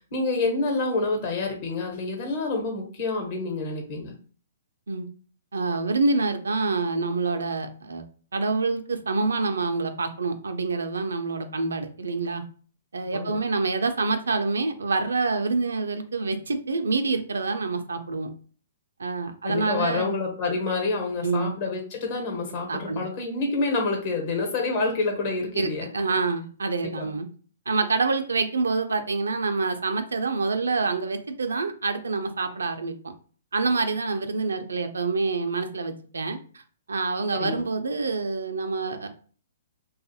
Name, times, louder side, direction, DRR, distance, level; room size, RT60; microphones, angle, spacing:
voice 1, 0.1-4.2 13.1-13.4 19.4-25.9 26.8-27.1 37.3-37.7, left 3 dB, 45° left, 0 dB, 1.0 m, -28 dB
voice 2, 5.5-8.0 8.3-12.4 12.9-18.3 19.0-20.1 21.2-21.5 22.7-23.0 25.5-27.3 27.7-33.1 33.5-36.4 36.9-39.1, right 3 dB, 85° right, 7 dB, 0.4 m, -26 dB
2.6 x 2.3 x 2.7 m, 0.41 s
hypercardioid pair, 130°, 0 cm